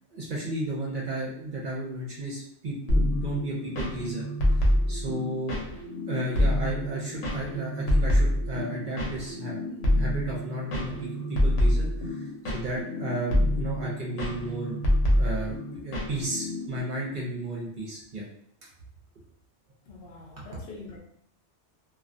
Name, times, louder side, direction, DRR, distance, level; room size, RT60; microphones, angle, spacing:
voice 1, 0.1-4.2 4.5-5.6 6.1-15.5 15.8-18.2 20.4-20.5, right 1 dB, 55° right, -4 dB, 0.6 m, -34 dB
sound 1, 2.9-16.8, left 1 dB, 90° left, 1.0 m, -27 dB
voice 2, 19.9-21.0, left 3 dB, 65° left, -1 dB, 0.7 m, -44 dB
2.3 x 2.2 x 2.5 m, 0.71 s
omnidirectional pair, 1.2 m